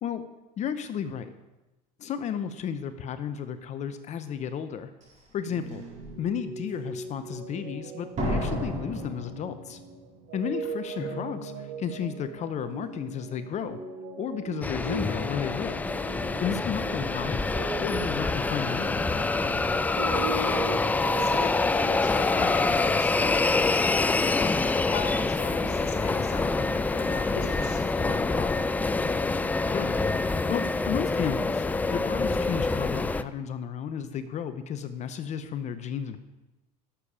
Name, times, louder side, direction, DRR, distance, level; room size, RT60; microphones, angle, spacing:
voice 1, 0.6-1.3 2.0-4.9 5.3-5.8 6.2-9.8 10.3-13.8 14.2-15.8 16.4-17.4 17.8-19.0 29.7-30.0 30.5-36.2, left 8 dB, 35° left, 10 dB, 0.7 m, -33 dB
Slam, 5.0-5.1 5.7-6.1 8.2-10.1 10.3-10.4, equal, 40° right, 4.3 m, -32 dB
sound 1, 5.4-21.3, right 3 dB, 65° right, 2.1 m, -39 dB
sound 2, 14.6-33.2, left 3 dB, 10° left, 0.3 m, -26 dB
voice 2, 20.0-28.6, left 6 dB, 75° left, 2 dB, 2.6 m, -39 dB
11.5 x 7.1 x 5.0 m, 1.0 s
supercardioid pair, 115°, 20 cm